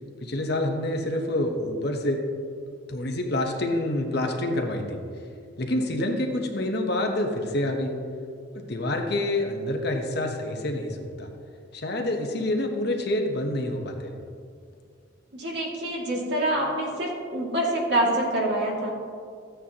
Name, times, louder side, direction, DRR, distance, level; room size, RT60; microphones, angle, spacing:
voice 1, 0.2-2.2 2.9-5.0 5.6-7.9 8.5-11.3 11.7-14.1, left 1 dB, 55° left, 2 dB, 1.1 m, -27 dB
voice 2, 15.3-18.9, right 1 dB, 55° right, -3 dB, 2.3 m, -26 dB
14.0 x 9.0 x 2.9 m, 2.3 s
head